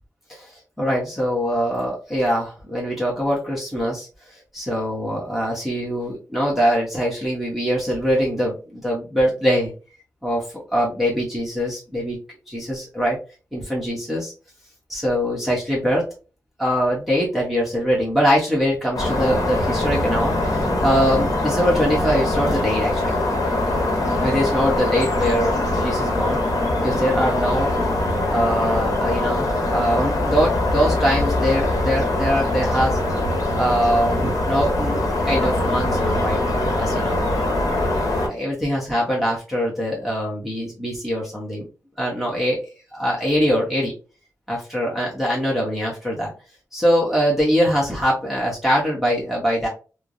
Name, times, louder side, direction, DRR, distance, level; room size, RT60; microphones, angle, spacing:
voice 1, 0.3-9.7 10.2-10.4 10.7-12.2 12.5-13.2 13.5-14.3 14.9-16.0 16.6-23.2 24.2-26.4 26.8-27.7 28.2-33.0 33.5-36.4 36.8-37.2 38.2-41.7 42.0-43.9 44.5-46.3 46.7-49.7, equal, 5° right, -5 dB, 1.0 m, -23 dB
sound 1, 18.9-38.3, left 1 dB, 70° left, 1.0 m, -22 dB
3.2 x 2.0 x 2.6 m, 0.34 s
cardioid pair, 85°, 6 cm